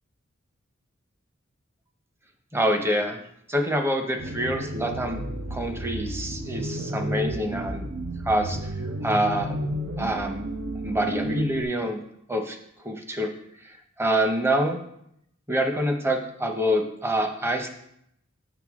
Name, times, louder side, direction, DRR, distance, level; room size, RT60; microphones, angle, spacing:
voice 1, 2.5-3.2 3.5-5.2 5.5-7.9 8.2-8.7 9.0-9.6 10.0-10.4 10.8-12.0 12.3-12.6 12.8-13.3 13.6-14.8 15.5-17.7, equal, 10° right, 4 dB, 0.8 m, -26 dB
sound 1, 4.2-11.6, right 1 dB, 75° right, 0.8 m, -32 dB
7.9 x 6.5 x 3.6 m, 0.74 s
head